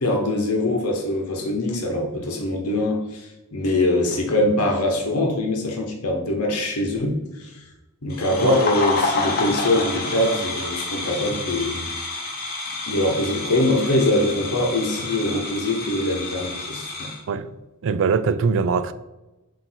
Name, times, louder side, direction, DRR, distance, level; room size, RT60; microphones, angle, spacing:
voice 1, 0.0-7.6 8.0-11.9 12.9-17.1, left 1 dB, 80° left, 1.1 m, -23 dB
sound 1, 8.1-17.2, left 3 dB, 45° left, 1.2 m, -29 dB
voice 2, 17.8-18.9, right 5 dB, 60° right, 0.4 m, -21 dB
7.7 x 2.8 x 4.4 m
head